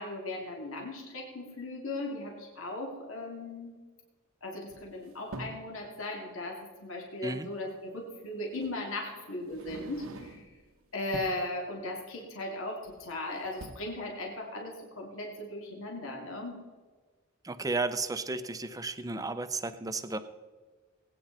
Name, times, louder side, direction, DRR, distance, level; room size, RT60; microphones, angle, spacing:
voice 1, 0.0-3.7 4.4-10.5 10.9-16.6, left 2 dB, 70° left, 0 dB, 2.7 m, -37 dB
sound 1, 4.7-5.7 7.4-7.5 8.6-8.8 9.4-10.6 11.0-11.5 12.8-13.2 13.4-13.7, right 2 dB, 80° right, 1.1 m, -45 dB
voice 2, 17.4-20.2, right 3 dB, 15° right, 10 dB, 0.7 m, -33 dB
20.0 x 9.3 x 4.1 m, 1.4 s
head